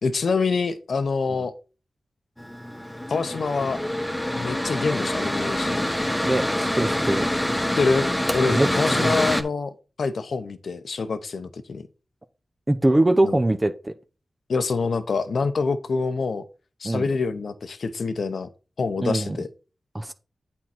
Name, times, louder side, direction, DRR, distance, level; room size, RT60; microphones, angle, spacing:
voice 1, 0.0-1.5 3.1-3.8 4.3-5.8 7.8-9.7 10.0-11.9 13.2-13.4 14.5-16.4 16.8-18.5 18.8-19.5, left 4 dB, 75° left, 0.8 m, -26 dB
Mechanical fan, 2.4-9.4, left 1 dB, 10° left, 1.1 m, -26 dB
voice 2, 6.2-7.3 8.5-8.7 9.0-9.2 12.7-13.9 16.8-17.1 19.0-19.4 19.9-20.1, right 1 dB, 25° right, 0.8 m, -22 dB
8.7 x 4.6 x 4.4 m
cardioid pair, 50°, 0 cm